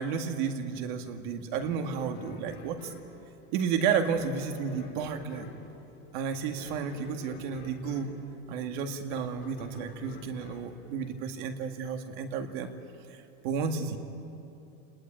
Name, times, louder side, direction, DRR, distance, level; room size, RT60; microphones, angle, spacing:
voice 1, 0.0-2.9 3.5-5.5 6.1-8.1 8.5-12.7 13.1-14.0, right 6 dB, 50° right, 5 dB, 2.1 m, -32 dB
sound 1, 1.5-11.7, left 4 dB, 35° left, 4.5 m, -50 dB
29.5 x 20.0 x 9.0 m, 3.0 s
supercardioid pair, 175°, 31 cm